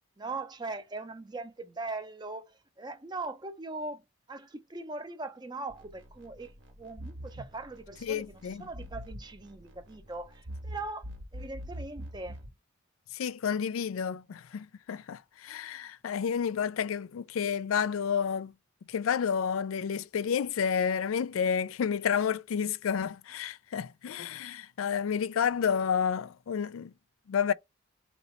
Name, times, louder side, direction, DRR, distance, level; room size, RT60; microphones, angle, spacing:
voice 1, 0.2-12.4, right 3 dB, 20° right, 0.6 m, -40 dB
sound 1, 5.7-12.5, equal, 70° right, 1.3 m, -45 dB
voice 2, 8.0-8.7 13.1-18.5 18.9-26.9 27.3-27.5, left 7 dB, 90° left, 0.4 m, -30 dB
4.1 x 3.1 x 3.9 m
head